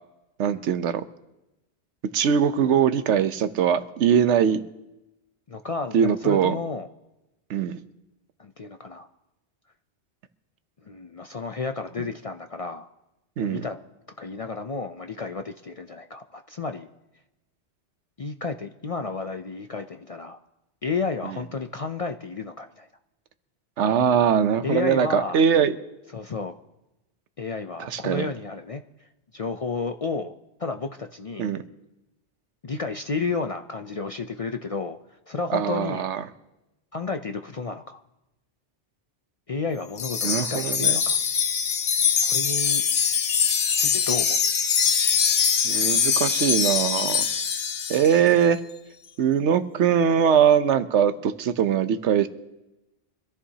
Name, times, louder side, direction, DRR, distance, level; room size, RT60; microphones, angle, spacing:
voice 1, 0.4-1.0 2.1-4.6 5.9-6.6 7.5-7.8 13.4-13.6 21.2-21.4 23.8-25.8 27.8-28.3 31.4-31.6 35.5-36.2 40.2-41.0 45.6-47.3 47.9-48.6 49.2-52.3, right 8 dB, 90° right, 12 dB, 1.0 m, -21 dB
voice 2, 5.5-6.9 8.4-9.1 10.8-12.9 13.4-13.8 14.2-16.9 18.2-20.4 20.8-22.9 24.6-25.4 26.1-26.5 27.4-28.8 29.3-30.3 30.6-31.5 32.6-35.0 35.3-36.1 36.9-38.0 39.5-41.2 42.2-42.8 43.8-44.4, left 4 dB, 50° left, 6 dB, 0.4 m, -32 dB
Wind chime, 40.0-48.2, left 7 dB, 85° left, 1.2 m, -23 dB
25.0 x 14.0 x 2.8 m, 0.97 s
omnidirectional pair, 1.2 m